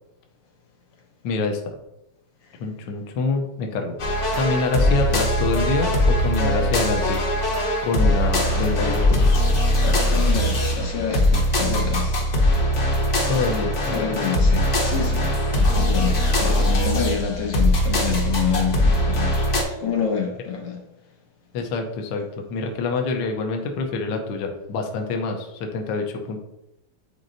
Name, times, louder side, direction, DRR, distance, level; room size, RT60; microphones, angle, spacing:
voice 1, 1.2-1.6 2.6-4.0 4.3-7.2 7.8-9.4 13.3-14.2 21.5-26.4, left 3 dB, 65° left, 3 dB, 1.3 m, -26 dB
sound 1, 4.0-19.6, left 1 dB, 45° left, 1.1 m, -21 dB
voice 2, 9.8-12.2 13.9-19.5 19.8-20.8, left 7 dB, 90° left, 0 dB, 2.2 m, -27 dB
9.1 x 4.1 x 2.6 m, 0.88 s
omnidirectional pair, 2.4 m